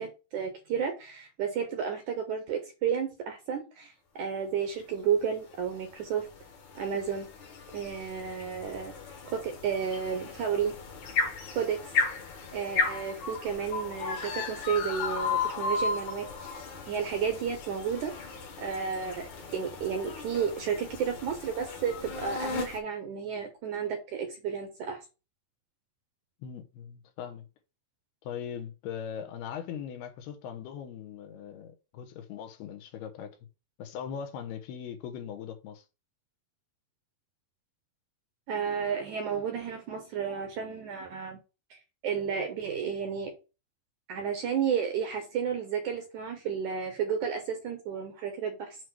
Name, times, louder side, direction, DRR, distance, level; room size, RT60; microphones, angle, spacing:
voice 1, 0.0-6.3 6.8-7.3 7.7-8.9 9.3-10.7 11.6-11.9 12.5-16.5 16.9-18.1 18.6-25.0 38.5-41.4 41.7-43.3 44.1-48.8, right 7 dB, 70° right, 2.0 m, -32 dB
sound 1, 5.5-22.8, left 4 dB, 55° left, 2.7 m, -35 dB
voice 2, 26.4-27.5 28.2-33.4 33.8-35.8, left 8 dB, 80° left, 3.0 m, -40 dB
7.8 x 3.2 x 6.0 m
omnidirectional pair, 4.6 m